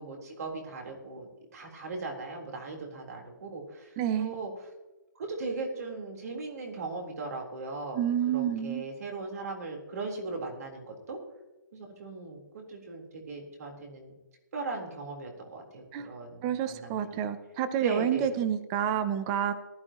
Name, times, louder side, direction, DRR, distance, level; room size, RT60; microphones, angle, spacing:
voice 1, 0.0-4.5 5.2-8.1 8.3-11.2 11.7-14.1 14.5-17.2 17.8-18.4, right 3 dB, 45° right, 1 dB, 3.7 m, -38 dB
voice 2, 4.0-4.3 7.9-8.8 15.9-16.1 16.4-19.5, right 9 dB, 15° right, 12 dB, 0.5 m, -29 dB
18.5 x 13.0 x 3.0 m, 1.1 s
hypercardioid pair, 175°, 11 cm